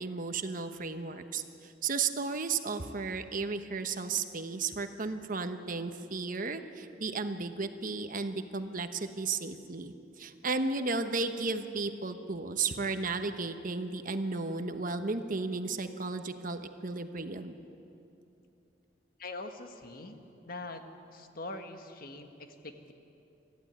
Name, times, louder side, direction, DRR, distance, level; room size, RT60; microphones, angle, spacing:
voice 1, 0.0-17.5, right 4 dB, 45° right, 8 dB, 1.1 m, -34 dB
voice 2, 19.2-20.8 21.1-22.9, left 2 dB, 50° left, 5 dB, 1.6 m, -43 dB
25.5 x 14.5 x 9.6 m, 2.8 s
head